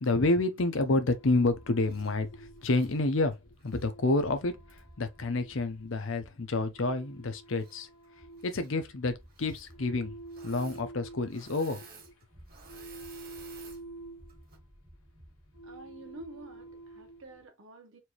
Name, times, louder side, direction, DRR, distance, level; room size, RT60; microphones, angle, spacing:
voice 1, 0.0-3.4 3.6-4.6 5.0-7.9 8.4-10.1 10.4-11.9, left 2 dB, 65° left, 0.7 m, -29 dB
sound 1, 0.9-17.4, right 2 dB, 90° left, 1.4 m, -50 dB
sound 2, 1.4-17.2, equal, 20° right, 1.0 m, -57 dB
Engine / Mechanisms, 1.8-2.2 2.6-3.9 4.7-4.8 7.5-8.1 8.3-8.7 9.3-9.7 10.3-10.8 11.1-13.8 14.3-14.6, right 5 dB, 45° right, 1.4 m, -54 dB
voice 2, 15.6-18.0, right 3 dB, 70° right, 1.4 m, -49 dB
4.4 x 2.7 x 3.0 m
head